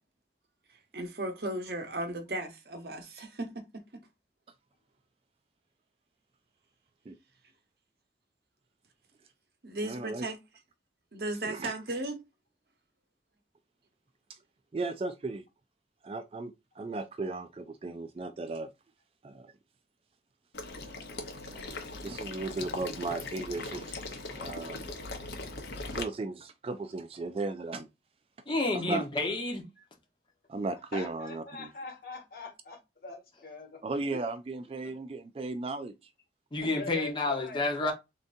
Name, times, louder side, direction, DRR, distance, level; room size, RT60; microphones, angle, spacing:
voice 1, 0.9-4.0 9.6-10.4 11.1-12.2, right 1 dB, 60° right, 0.9 m, -36 dB
voice 2, 9.8-10.3 11.4-11.7 14.7-15.4 16.0-18.7 19.2-19.5 21.5-21.7 22.0-24.9 25.9-27.9 28.7-29.0 30.5-31.7 33.8-35.9, right 3 dB, 30° right, 0.3 m, -36 dB
Water / Liquid, 20.5-26.0, left 3 dB, 75° left, 0.8 m, -40 dB
voice 3, 28.5-29.6 36.5-37.9, left 2 dB, 25° left, 1.0 m, -29 dB
voice 4, 30.9-33.8 34.1-34.2 34.8-35.0 36.6-37.6, left 3 dB, 55° left, 1.5 m, -43 dB
3.8 x 3.5 x 2.5 m
head